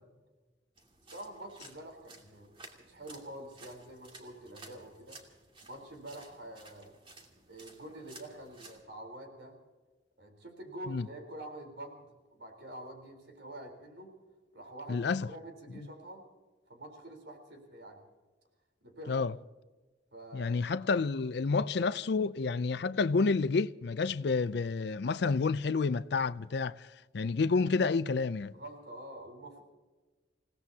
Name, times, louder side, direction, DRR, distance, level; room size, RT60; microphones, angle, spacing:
sound 1, 0.8-8.8, right 2 dB, 30° right, 2.5 m, -55 dB
voice 1, 1.1-2.5 2.8-5.2 5.6-7.0 7.5-9.6 10.2-14.1 14.5-16.2 16.7-18.0 18.8-19.2 20.1-20.6 28.5-29.6, right 1 dB, 75° right, 3.9 m, -47 dB
voice 2, 14.9-15.3 19.1-19.3 20.3-28.6, left 4 dB, 60° left, 0.5 m, -29 dB
29.0 x 17.5 x 2.8 m
head